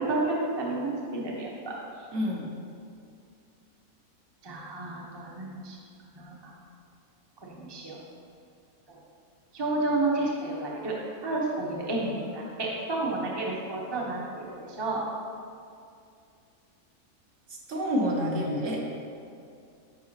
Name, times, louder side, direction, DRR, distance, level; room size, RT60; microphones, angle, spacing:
voice 1, 0.1-1.7 4.4-5.8 6.2-6.5 7.4-8.0 9.5-10.9 11.2-15.0, right 2 dB, 20° right, -3 dB, 0.7 m, -31 dB
voice 2, 2.1-2.5 17.5-18.8, equal, 60° right, -2 dB, 1.2 m, -28 dB
10.0 x 4.8 x 2.9 m, 2.4 s
omnidirectional pair, 1.6 m